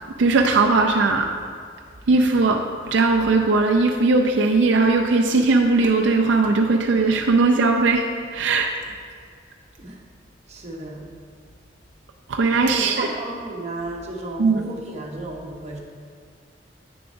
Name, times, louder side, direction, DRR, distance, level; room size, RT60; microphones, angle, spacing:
voice 1, 0.2-1.3 2.1-2.6 2.9-8.0 8.3-8.7 12.3-13.1 14.4-14.7, right 3 dB, 75° right, 2 dB, 0.4 m, -18 dB
voice 2, 10.5-11.1 12.7-15.8, right 2 dB, 35° right, -1 dB, 0.9 m, -33 dB
8.7 x 6.7 x 2.6 m, 2.1 s
head